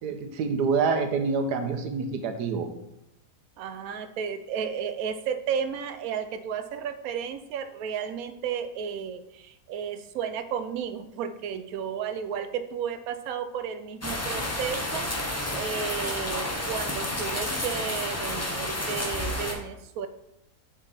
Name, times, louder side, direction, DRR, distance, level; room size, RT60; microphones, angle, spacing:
voice 1, 0.0-2.7, right 5 dB, 85° right, 7 dB, 1.3 m, -27 dB
voice 2, 3.6-15.1 15.5-20.1, right 7 dB, 70° right, 9 dB, 1.0 m, -33 dB
sound 1, 14.0-19.5, left 1 dB, 25° left, 0.3 m, -30 dB
6.0 x 5.2 x 4.0 m, 0.84 s
omnidirectional pair, 1.7 m